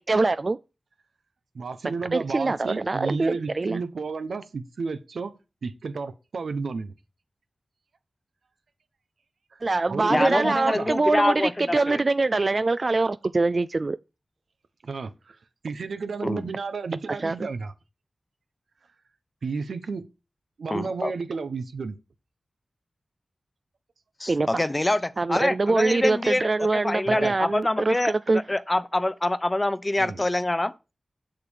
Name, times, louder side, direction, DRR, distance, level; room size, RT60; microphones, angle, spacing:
voice 1, 0.1-0.6 2.1-3.8 9.6-14.0 17.1-17.5 24.3-24.5 25.2-28.4, right 3 dB, 55° right, 0.5 m, -24 dB
voice 2, 1.5-5.3 5.6-6.9 9.9-10.9 14.8-15.4 15.6-17.7 19.4-20.1 20.6-22.0 27.1-27.3 30.0-30.2, right 4 dB, 90° right, 1.3 m, -32 dB
voice 3, 10.1-12.0 16.2-16.4 20.7-21.1 24.2-30.9, left 1 dB, 30° left, 1.0 m, -26 dB
8.0 x 6.7 x 7.4 m
cardioid pair, 45°, 0 cm